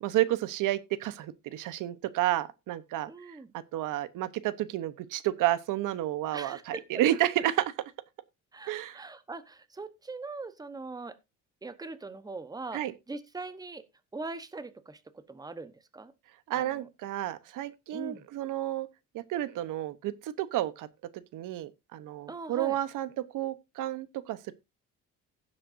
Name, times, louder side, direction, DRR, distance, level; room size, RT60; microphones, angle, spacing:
voice 1, 0.0-3.1 3.7-7.7 8.7-9.0 12.7-12.9 16.5-18.9 19.1-20.9 21.3-24.5, right 14 dB, 75° right, 1.0 m, -31 dB
voice 2, 3.1-3.5 6.3-6.8 8.5-11.2 11.6-12.8 13.1-13.8 14.1-16.1 16.5-16.9 17.9-18.2 22.3-22.8, right 3 dB, 10° right, 1.0 m, -41 dB
16.0 x 7.7 x 2.6 m
cardioid pair, 125°, 32 cm